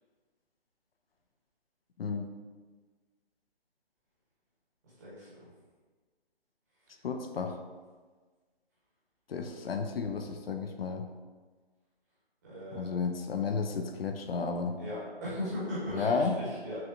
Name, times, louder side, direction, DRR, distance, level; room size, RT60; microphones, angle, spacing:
voice 1, 5.0-5.5 12.4-12.9 14.8-16.8, left 1 dB, 15° right, -9 dB, 0.9 m, -38 dB
voice 2, 7.0-7.6 9.3-11.0 12.7-14.8 15.9-16.4, left 5 dB, 70° left, 5 dB, 0.5 m, -32 dB
5.8 x 2.2 x 2.5 m, 1.4 s
hypercardioid pair, 165°, 31 cm